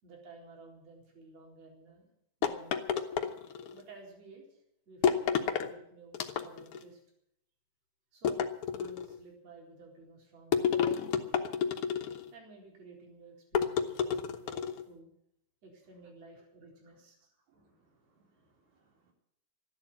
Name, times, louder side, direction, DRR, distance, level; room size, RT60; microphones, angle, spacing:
voice 1, 0.0-2.1 2.4-3.0 3.7-7.0 8.1-8.4 8.7-11.5 12.3-14.6 14.8-15.1 15.6-17.3, right 3 dB, 45° right, -1 dB, 5.1 m, -54 dB
sound 1, 2.4-3.8 5.0-5.7 6.1-6.8 8.2-9.2 10.5-12.3 13.5-14.8, left 7 dB, 85° left, 1.2 m, -30 dB
voice 2, 17.5-19.1, right 3 dB, 75° right, -1 dB, 5.7 m, -71 dB
14.0 x 11.5 x 8.4 m, 0.75 s
omnidirectional pair, 4.4 m